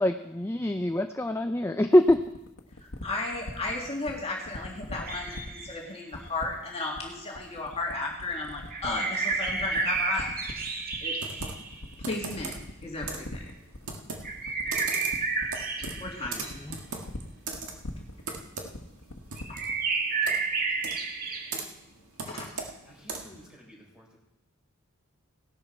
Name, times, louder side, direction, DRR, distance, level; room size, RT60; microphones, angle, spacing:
voice 1, 0.0-2.2 16.6-16.8, left 1 dB, 10° left, 6 dB, 0.5 m, -24 dB
sound 1, 2.1-19.8, left 1 dB, 80° left, 1.4 m, -41 dB
voice 2, 3.0-10.3 11.0-11.1 12.0-12.5 12.8-13.4 16.0-16.6 19.5-19.6 22.2-22.5, left 2 dB, 30° left, -2 dB, 2.1 m, -34 dB
sound 2, 5.1-5.9 8.7-11.8 14.2-16.5 19.4-21.6, right 4 dB, 45° right, 1.7 m, -31 dB
Computer keyboard, 11.2-23.5, right 4 dB, 80° right, 1.8 m, -40 dB
voice 3, 22.8-24.2, equal, 5° right, -2 dB, 4.8 m, -52 dB
17.5 x 12.0 x 4.5 m, 0.88 s
head